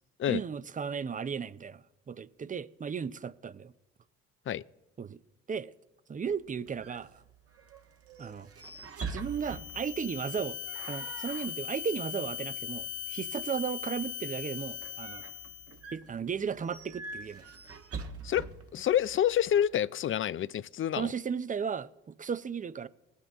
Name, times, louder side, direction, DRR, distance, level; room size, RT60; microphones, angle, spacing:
voice 1, 0.3-3.7 5.0-5.2 5.5-5.7 6.1-7.2 8.2-8.5 9.1-10.6 10.8-15.2 15.9-17.4 21.0-22.9, right 6 dB, 25° right, 0.6 m, -35 dB
sound 1, 6.3-19.7, right 4 dB, 50° right, 1.4 m, -46 dB
sound 2, 9.2-15.8, left 11 dB, 85° left, 0.9 m, -39 dB
voice 2, 18.7-21.1, left 10 dB, 45° left, 0.5 m, -28 dB
19.5 x 8.3 x 3.5 m
supercardioid pair, 65°, 29 cm